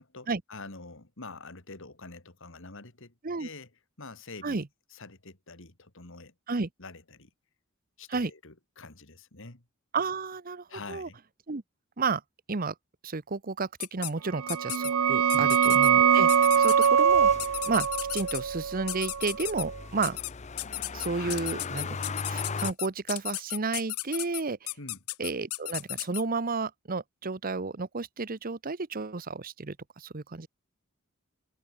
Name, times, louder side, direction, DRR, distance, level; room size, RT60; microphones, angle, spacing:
voice 1, 0.0-3.7 4.0-4.6 4.9-6.3 6.8-7.3 8.0-9.6 10.7-11.2 15.3-15.5 21.1-21.6 24.8-25.0, left 3 dB, 60° left, 3.1 m, -46 dB
voice 2, 9.9-11.1 11.5-11.6 12.0-12.2 12.5-12.7 13.0-17.3 17.6-20.2 20.9-22.0 22.3-24.7 25.2-30.5, right 4 dB, 40° right, 0.9 m, -32 dB
sound 1, 13.8-14.1 14.5-14.9 15.3-15.9 16.3-16.9 17.4-18.4 18.9-19.6 20.0-20.3 20.6-26.2, left 20 dB, 90° left, 0.6 m, -34 dB
sound 2, 14.4-19.8, right 7 dB, 80° right, 0.6 m, -23 dB
Motor vehicle (road), 16.1-22.7, left 4 dB, 35° left, 0.7 m, -39 dB
head